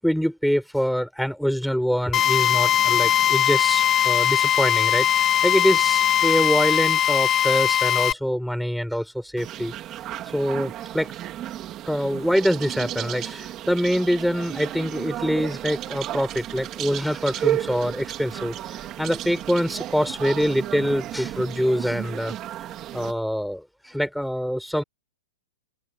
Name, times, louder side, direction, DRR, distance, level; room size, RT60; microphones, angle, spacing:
voice 1, 0.0-9.7 10.2-11.1 11.9-22.3 22.9-24.8, equal, ahead, 6.7 m, -25 dB
Drill, 2.1-8.1, left 11 dB, 15° left, 1.0 m, -20 dB
sound 1, 9.4-23.1, right 12 dB, 20° right, 2.8 m, -33 dB
open air
hypercardioid pair, 170°, 0 cm